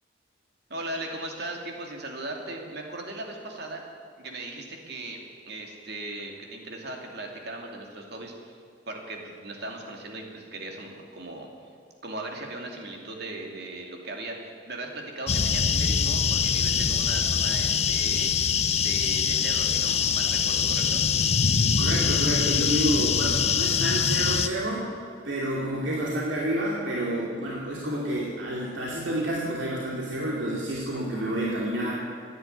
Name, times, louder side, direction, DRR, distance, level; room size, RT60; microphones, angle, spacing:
voice 1, 0.7-3.8 4.2-5.2 5.5-8.5 8.9-11.5 12.0-21.0, right 2 dB, 60° right, 1 dB, 2.6 m, -38 dB
sound 1, 15.3-24.5, left 6 dB, 35° left, 0.6 m, -24 dB
voice 2, 21.8-24.9 25.2-32.0, right 1 dB, 85° right, -4 dB, 2.6 m, -29 dB
15.0 x 10.5 x 9.3 m, 2.4 s
head